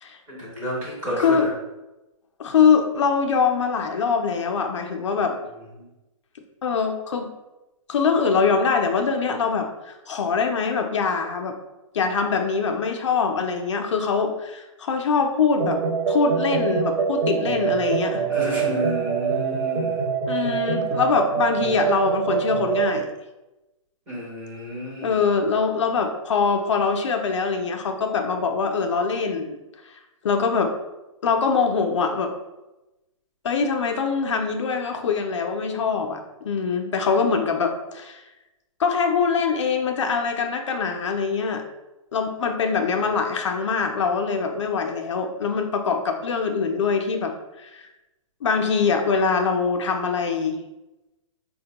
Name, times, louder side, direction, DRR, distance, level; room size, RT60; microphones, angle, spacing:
voice 1, 0.3-1.5 18.3-20.1 24.1-25.2, equal, 10° right, -7 dB, 0.6 m, -31 dB
voice 2, 2.4-5.4 6.6-7.3 7.9-11.6 11.9-18.2 20.3-23.1 25.0-29.6 29.9-30.0 30.2-30.7 31.2-32.3 33.4-38.2 38.8-41.6 42.1-47.8 48.4-50.6, left 5 dB, 60° left, 4 dB, 0.4 m, -23 dB
sound 1, 15.6-23.0, right 6 dB, 85° right, 0.6 m, -25 dB
4.5 x 2.2 x 2.8 m, 1.0 s
hypercardioid pair, 175°, 18 cm